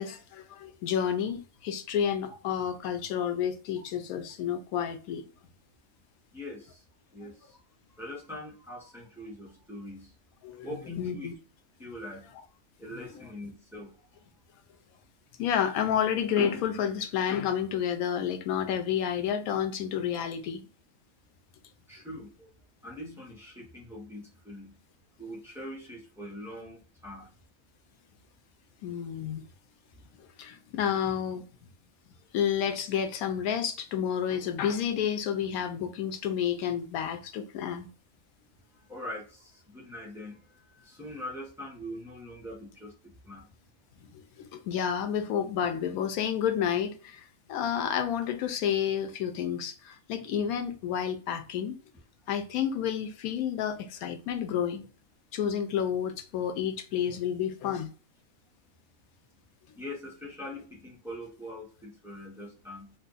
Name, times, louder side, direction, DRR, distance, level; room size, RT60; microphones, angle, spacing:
voice 1, 0.0-5.2 10.4-10.7 11.0-11.3 15.4-20.6 28.8-29.4 30.4-31.4 32.3-37.9 44.1-51.8 52.3-54.8 55.3-57.9, left 8 dB, 85° left, 1.1 m, -30 dB
voice 2, 6.3-6.8 7.1-7.6 7.9-10.1 10.6-11.3 11.8-14.0 21.9-22.5 22.8-24.8 25.2-27.3 38.7-43.5 59.8-62.9, left 1 dB, ahead, 0.9 m, -43 dB
2.7 x 2.5 x 3.7 m
omnidirectional pair, 1.5 m